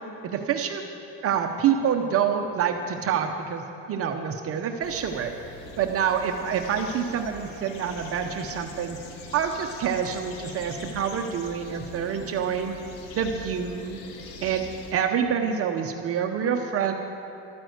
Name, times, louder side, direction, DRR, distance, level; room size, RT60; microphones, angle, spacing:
voice 1, 0.2-0.8 1.2-5.3 5.8-9.0 9.3-12.7 13.1-14.0 14.4-14.6 14.9-16.9, right 7 dB, 35° right, 4 dB, 0.7 m, -27 dB
sound 1, 4.8-14.9, left 2 dB, 65° left, 1.5 m, -43 dB
13.0 x 9.6 x 7.9 m, 2.9 s
cardioid pair, 155°, 38 cm